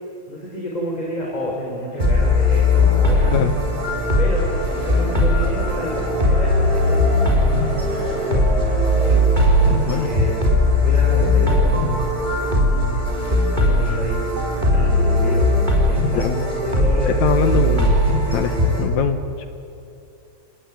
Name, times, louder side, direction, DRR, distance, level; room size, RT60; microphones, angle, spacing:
voice 1, 0.3-3.4 4.2-9.2 9.5-10.4 10.8-13.1 13.6-15.5 15.8-17.1, right 1 dB, 15° left, -3 dB, 4.2 m, -30 dB
Race car auto racing, 0.8-13.4, equal, 75° right, 6.0 m, -37 dB
sound 1, 2.0-18.8, left 1 dB, 15° right, 4.8 m, -18 dB
voice 2, 9.7-10.1 16.0-16.4 17.2-19.5, left 9 dB, 75° left, 9 dB, 2.3 m, -23 dB
30.0 x 21.0 x 9.5 m, 2.7 s
omnidirectional pair, 3.4 m